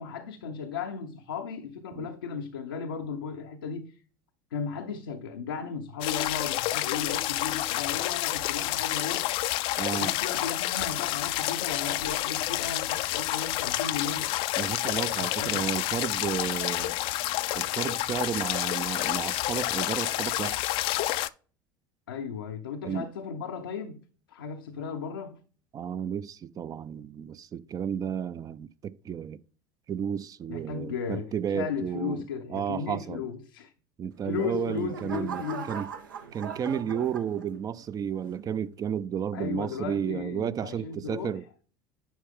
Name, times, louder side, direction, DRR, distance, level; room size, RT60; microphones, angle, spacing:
voice 1, 0.0-3.9 4.5-9.3 9.9-14.3 15.2-15.6 22.1-24.0 24.3-25.4 30.5-33.7 34.2-35.7 39.3-41.4, left 6 dB, 85° left, 0.7 m, -35 dB
sound 1, 6.0-21.3, left 16 dB, 55° left, 0.4 m, -29 dB
voice 2, 9.8-10.1 14.6-16.9 17.5-20.6 22.8-23.1 25.7-29.4 29.9-32.2 32.5-33.3 34.0-35.9 36.3-41.4, right 8 dB, 35° right, 0.5 m, -32 dB
sound 2, 34.2-37.8 38.4-38.7, right 6 dB, 85° right, 0.9 m, -40 dB
10.5 x 4.5 x 3.6 m
hypercardioid pair, 75°, 11 cm